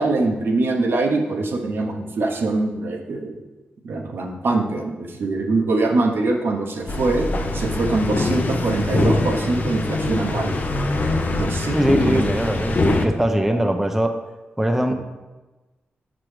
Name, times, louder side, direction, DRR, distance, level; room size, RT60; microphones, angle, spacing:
voice 1, 0.0-3.4 3.8-7.3 7.5-10.5 11.3-12.2, right 2 dB, 70° right, 2 dB, 0.9 m, -23 dB
sound 1, 6.9-13.1, left 2 dB, 45° left, 0.6 m, -23 dB
voice 2, 11.7-14.1 14.6-14.9, right 1 dB, 10° right, 5 dB, 0.5 m, -21 dB
6.1 x 5.7 x 3.3 m, 1.1 s
cardioid pair, 70°, 4 cm